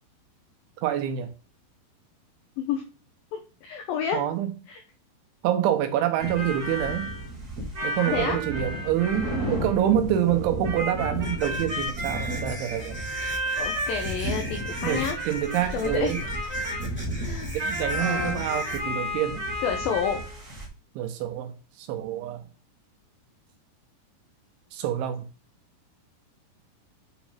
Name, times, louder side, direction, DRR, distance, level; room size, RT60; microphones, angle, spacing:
voice 1, 0.8-1.3 4.1-4.5 5.4-7.1 7.8-13.0 14.8-16.2 17.5-19.4 21.0-21.5 21.8-22.4 24.7-25.3, right 11 dB, 85° right, 3.5 m, -26 dB
voice 2, 3.3-4.2 4.7-4.8 8.1-8.4 13.6-15.2 15.7-16.2 17.2-17.6 18.0-18.5 19.6-20.2, left 7 dB, 85° left, 2.0 m, -29 dB
sound 1, 6.2-20.7, equal, 60° right, 0.9 m, -32 dB
sound 2, 11.1-18.8, equal, 5° left, 1.8 m, -38 dB
8.8 x 5.1 x 3.5 m
omnidirectional pair, 5.3 m